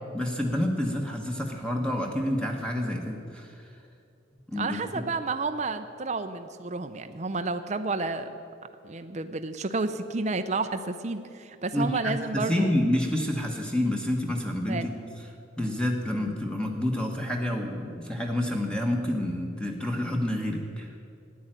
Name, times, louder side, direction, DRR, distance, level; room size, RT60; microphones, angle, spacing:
voice 1, 0.1-3.5 4.5-5.0 11.7-14.9 15.6-20.9, left 1 dB, 5° left, 1 dB, 1.2 m, -28 dB
voice 2, 4.6-8.3 8.8-12.7 14.6-14.9, right 3 dB, 35° right, 8 dB, 0.6 m, -31 dB
13.5 x 10.5 x 9.0 m, 2.5 s
head